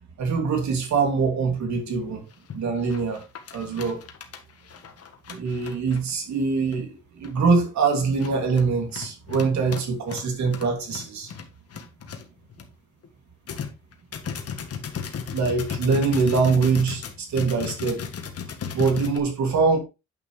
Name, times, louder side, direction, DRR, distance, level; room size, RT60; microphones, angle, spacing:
voice 1, 0.2-2.2 2.5-3.2 3.5-4.0 5.3-11.3 15.3-18.0 18.7-19.8, right 4 dB, 65° right, 2.9 m, -23 dB
sound 1, 1.8-1.9 2.3-2.6 2.9-6.1 6.7-6.8 7.2-7.5 8.0-12.7 13.0-13.1 13.5-19.2, left 7 dB, 50° left, 1.6 m, -36 dB
9.2 x 5.6 x 3.4 m
cardioid pair, 90°, 30 cm